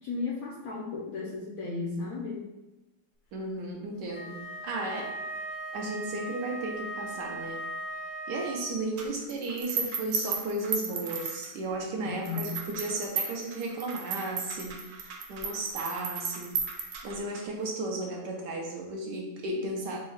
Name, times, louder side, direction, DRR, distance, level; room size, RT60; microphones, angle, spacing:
voice 1, 0.0-2.4 12.0-12.4, left 4 dB, 65° left, -4 dB, 0.9 m, -35 dB
voice 2, 3.3-5.1 5.7-7.6 8.3-16.5 17.0-20.0, right 2 dB, 70° right, 0 dB, 1.2 m, -34 dB
Wind instrument woodwind instrument, 4.1-8.8, right 1 dB, 85° left, 1.9 m, -38 dB
sound 1, 9.0-11.8 12.2-17.4, right 5 dB, 85° right, 0.7 m, -35 dB
4.3 x 2.3 x 4.6 m, 0.99 s
omnidirectional pair, 2.1 m